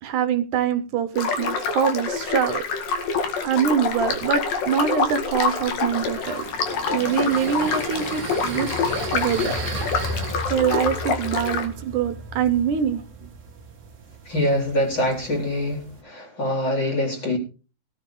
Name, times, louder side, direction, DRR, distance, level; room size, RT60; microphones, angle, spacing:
voice 1, 0.0-2.6 3.4-6.5 6.9-8.7 9.1-9.6 10.5-13.3, right 8 dB, 75° right, 2.3 m, -24 dB
sound 1, 1.2-11.7, left 5 dB, 85° left, 3.8 m, -26 dB
sound 2, 5.6-16.0, right 2 dB, 45° right, 1.0 m, -35 dB
voice 2, 14.3-17.4, left 1 dB, 30° left, 4.6 m, -24 dB
17.5 x 11.0 x 3.8 m
omnidirectional pair, 3.8 m